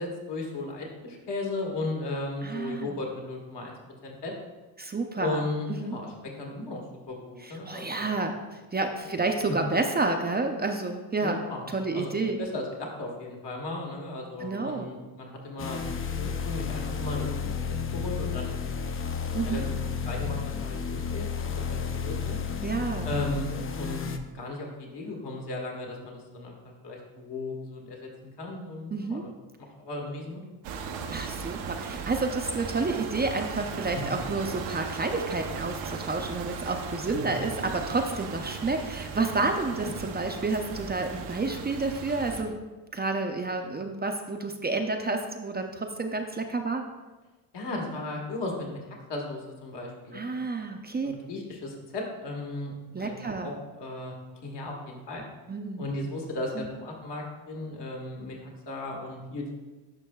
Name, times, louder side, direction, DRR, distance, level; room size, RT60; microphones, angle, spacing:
voice 1, 0.0-3.7 4.0-4.3 5.2-6.1 6.4-6.8 7.1-8.1 9.0-9.2 9.5-9.6 11.2-11.7 11.9-15.9 16.2-17.6 17.9-18.6 19.4-22.4 23.0-23.5 23.8-26.5 26.8-29.2 29.8-30.4 33.9-34.0 37.1-37.4 39.7-39.9 47.5-50.2 51.0-54.2 54.4-55.2 55.8-59.5, left 2 dB, 55° left, 0 dB, 1.7 m, -36 dB
voice 2, 2.4-3.0 4.8-6.0 7.4-8.4 8.7-11.4 11.7-12.4 14.4-14.9 19.3-19.7 22.6-23.1 28.9-29.2 31.1-42.6 42.9-46.9 50.1-51.1 52.9-53.5 55.5-55.9 56.6-56.7, right 3 dB, 20° right, 4 dB, 0.5 m, -30 dB
sound 1, 15.6-24.2, left 6 dB, 30° left, 0.5 m, -32 dB
sound 2, 30.6-42.4, right 5 dB, 90° right, 0.8 m, -37 dB
11.5 x 5.3 x 2.3 m, 1.2 s
cardioid pair, 80°, 48 cm